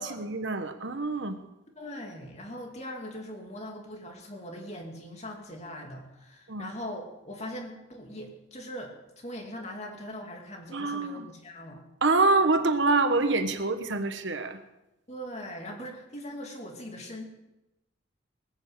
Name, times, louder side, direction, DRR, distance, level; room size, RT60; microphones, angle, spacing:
voice 1, 0.0-1.4 6.5-6.7 10.7-11.3 12.0-14.6, right 3 dB, 60° right, 8 dB, 1.2 m, -26 dB
voice 2, 1.8-11.8 15.1-17.2, equal, 35° left, 2 dB, 2.6 m, -41 dB
20.0 x 7.2 x 8.2 m, 0.96 s
head